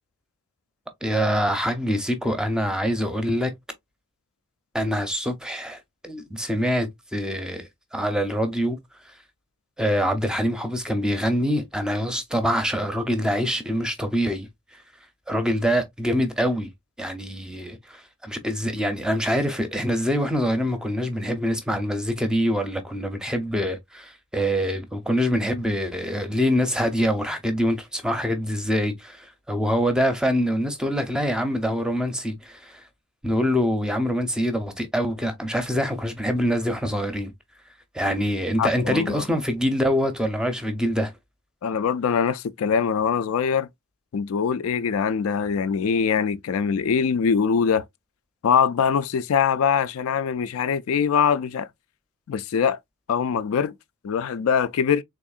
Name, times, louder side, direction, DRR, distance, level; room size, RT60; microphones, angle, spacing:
voice 1, 1.0-3.5 4.7-8.8 9.8-14.5 14.7-14.8 15.3-16.7 17.0-32.8 33.2-37.3 37.9-41.1, equal, 5° right, 0.5 m, -25 dB
voice 2, 38.6-39.2 41.6-43.7 44.1-47.8 48.4-51.7 52.3-52.8 53.1-53.7 54.0-55.0, left 6 dB, 75° left, 0.4 m, -23 dB
3.5 x 3.5 x 2.3 m
head